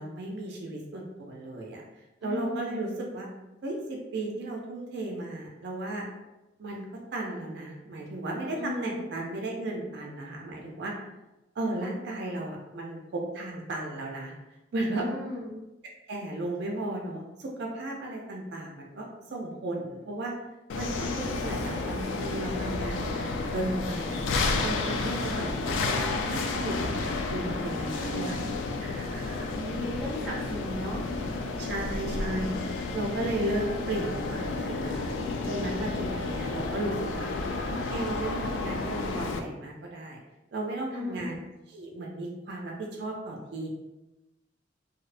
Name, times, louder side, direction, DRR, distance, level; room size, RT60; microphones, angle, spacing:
voice 1, 0.0-1.8 2.2-3.3 3.6-6.1 6.6-10.9 11.6-14.3 14.7-15.1 16.1-20.3 20.7-24.2 24.6-28.4 28.8-29.5 29.8-30.0 31.6-35.1 35.4-37.3 37.7-40.2 40.5-41.4 41.7-43.7, right 2 dB, 60° right, -1 dB, 0.4 m, -35 dB
voice 2, 2.2-2.8 8.6-9.1 15.0-15.5 25.3-25.5 27.8-28.4 29.5-31.0 40.9-41.3, left 2 dB, ahead, -8 dB, 0.8 m, -36 dB
sound 1, 20.7-39.4, left 3 dB, 80° left, 0.3 m, -31 dB
2.6 x 2.0 x 2.4 m, 0.98 s
head